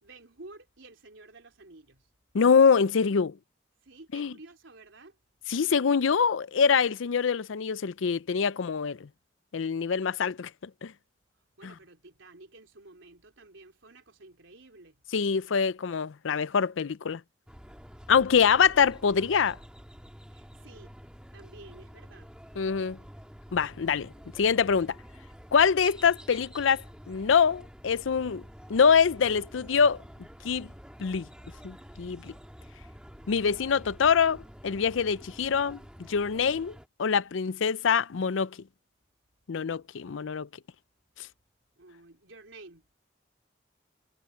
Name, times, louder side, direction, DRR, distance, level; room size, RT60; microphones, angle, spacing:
voice 1, 0.0-2.1 3.8-5.2 11.6-15.0 20.3-21.0 21.3-22.3 41.8-42.9, right 2 dB, 85° right, 3.7 m, -51 dB
voice 2, 2.3-3.3 4.1-4.3 5.5-9.0 9.5-10.5 10.8-10.9 15.1-17.2 18.1-19.6 22.6-23.0 23.5-24.9 25.5-26.8 27.1-28.4 28.7-30.0 30.4-30.7 31.0-31.3 31.6-32.3 33.3-34.4 34.6-35.8 36.1-36.7 37.0-38.5 39.5-40.5, left 6 dB, 90° left, 0.5 m, -24 dB
sound 1, 17.5-36.9, equal, 5° right, 2.1 m, -48 dB
head